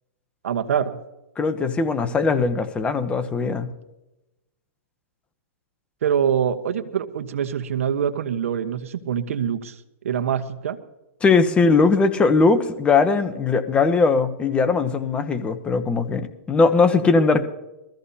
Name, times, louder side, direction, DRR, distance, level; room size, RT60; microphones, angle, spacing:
voice 1, 0.4-1.0 6.0-10.8, right 8 dB, 75° right, 9 dB, 1.2 m, -25 dB
voice 2, 1.4-3.7 11.2-17.5, left 4 dB, 15° left, 9 dB, 1.0 m, -20 dB
21.5 x 14.5 x 2.8 m, 0.95 s
hypercardioid pair, 135°, 8 cm